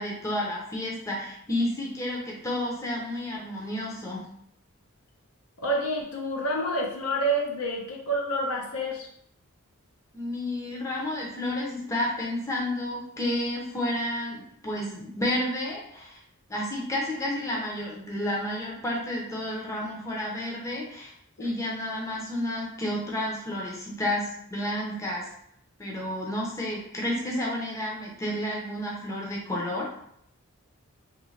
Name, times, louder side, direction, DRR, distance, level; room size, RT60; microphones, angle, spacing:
voice 1, 0.0-4.3 10.1-16.2 16.5-21.1 21.4-25.3 25.8-29.9, left 1 dB, 15° left, -3 dB, 0.5 m, -31 dB
voice 2, 5.6-9.1 21.4-21.5, right 1 dB, 85° left, 0 dB, 0.7 m, -28 dB
3.1 x 2.5 x 3.2 m, 0.71 s
head